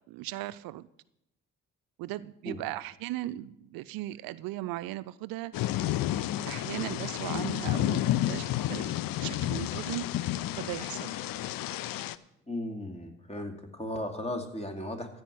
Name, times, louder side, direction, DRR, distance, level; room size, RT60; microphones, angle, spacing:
voice 1, 0.1-0.9 2.0-5.5 6.4-8.9 9.2-10.0 10.5-11.2, right 16 dB, 70° right, 16 dB, 0.5 m, -37 dB
Thunder / Rain, 5.5-12.2, left 13 dB, 65° left, 0.6 m, -31 dB
voice 2, 12.5-15.2, left 1 dB, 15° left, 5 dB, 2.5 m, -36 dB
14.5 x 4.9 x 9.1 m, 0.82 s
hypercardioid pair, 45°, 37 cm